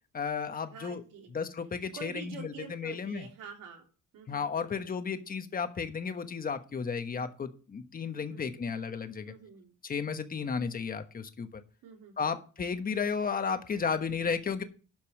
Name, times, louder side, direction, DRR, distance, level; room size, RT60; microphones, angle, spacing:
voice 1, 0.1-1.0 1.3-3.3 4.3-9.3 9.8-11.6 12.2-14.6, left 5 dB, 25° left, 8 dB, 1.2 m, -33 dB
voice 2, 0.7-1.3 1.9-3.8 4.1-4.7 8.1-8.6 9.3-9.7 11.8-12.4, right 5 dB, 80° right, 1 dB, 3.3 m, -47 dB
12.0 x 5.4 x 6.4 m, 0.37 s
cardioid pair, 145°, 32 cm